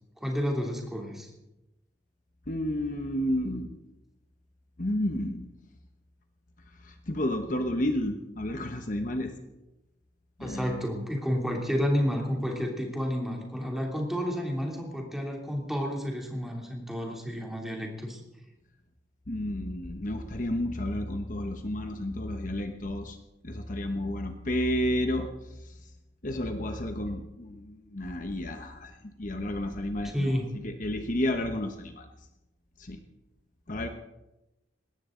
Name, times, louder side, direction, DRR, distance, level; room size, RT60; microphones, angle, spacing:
voice 1, 0.2-1.3 10.4-18.2 30.1-30.5, equal, ahead, -1 dB, 2.9 m, -30 dB
voice 2, 2.5-3.8 4.8-5.5 6.8-9.4 10.4-10.8 19.3-23.2 23.4-25.3 25.6-25.7 26.2-30.4 30.6-32.0 32.8-33.0 33.7-33.9, left 1 dB, 45° left, 6 dB, 1.1 m, -31 dB
20.5 x 17.5 x 3.9 m, 0.98 s
head